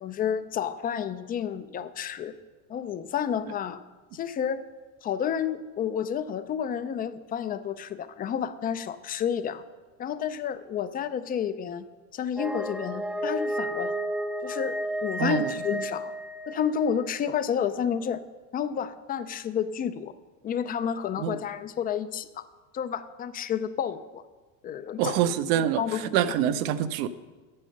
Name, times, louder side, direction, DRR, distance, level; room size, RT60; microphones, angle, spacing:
voice 1, 0.0-2.4 2.7-3.8 4.1-4.6 5.0-9.6 10.0-11.9 12.1-13.9 14.4-14.8 15.0-16.1 16.5-18.2 18.5-20.1 20.4-22.4 22.7-24.2 24.6-25.2 25.8-26.0, left 8 dB, 25° left, 13 dB, 0.3 m, -30 dB
sound 1, 12.4-17.0, right 1 dB, 5° right, 0.7 m, -32 dB
voice 2, 15.2-15.5 21.2-21.4 25.0-27.1, right 10 dB, 75° right, 11 dB, 0.7 m, -26 dB
8.8 x 7.5 x 6.3 m, 1.3 s
supercardioid pair, 115°, 41 cm